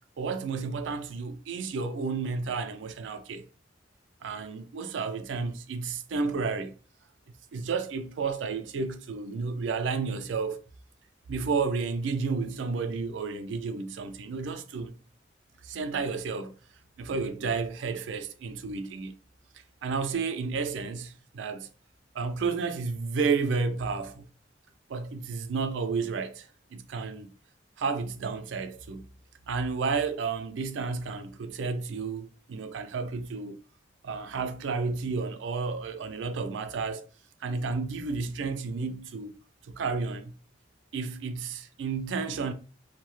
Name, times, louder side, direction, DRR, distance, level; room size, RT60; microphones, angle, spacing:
voice 1, 0.2-3.4 4.2-6.8 7.5-10.6 11.3-14.9 15.6-16.6 17.0-19.1 19.8-21.7 22.1-24.2 24.9-27.3 27.8-29.1 29.5-33.6 34.0-37.1 37.4-39.3 39.7-40.3 40.9-42.5, right 4 dB, 75° right, 0.4 m, -31 dB
2.7 x 2.1 x 3.0 m
head